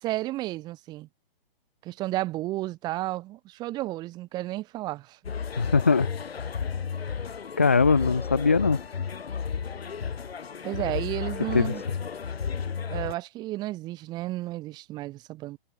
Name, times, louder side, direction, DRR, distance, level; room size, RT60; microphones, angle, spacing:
voice 1, 0.0-1.1 1.8-5.2 10.6-11.8 12.9-15.6, right 17 dB, 15° right, 2.5 m, -32 dB
sound 1, 5.2-13.1, left 6 dB, 85° left, 4.8 m, -33 dB
voice 2, 5.6-6.1 7.6-8.8 11.5-11.7, left 4 dB, 15° left, 0.4 m, -21 dB
hypercardioid pair, 170°, 30 cm